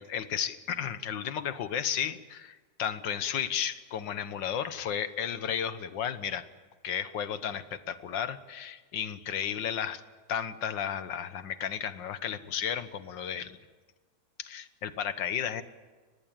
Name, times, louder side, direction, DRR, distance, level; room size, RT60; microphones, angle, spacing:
voice 1, 0.0-6.4 6.8-10.0 10.3-13.6 14.4-15.6, left 8 dB, 80° left, 12 dB, 1.8 m, -33 dB
24.0 x 19.0 x 9.0 m, 1.4 s
omnidirectional pair, 2.0 m